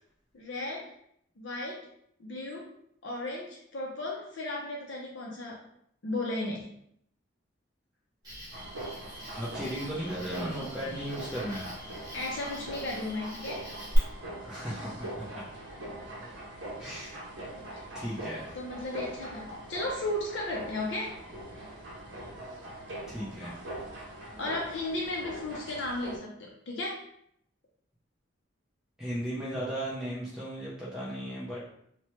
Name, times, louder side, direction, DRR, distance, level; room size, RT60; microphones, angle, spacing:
voice 1, 0.3-0.9 1.4-1.9 2.2-2.7 3.0-5.6 6.0-6.7 12.1-13.6 17.8-17.9 18.5-21.2 24.4-27.0, left 2 dB, 65° left, -2 dB, 0.5 m, -35 dB
Cricket, 8.2-14.0, equal, 20° right, 1.2 m, -43 dB
sound 1, 8.5-26.2, right 1 dB, 65° right, 0.6 m, -42 dB
voice 2, 9.3-11.7 14.4-15.3 16.8-17.2 17.9-18.6 23.1-23.6 29.0-31.6, equal, 5° right, -8 dB, 0.5 m, -36 dB
3.0 x 2.1 x 2.9 m, 0.70 s
head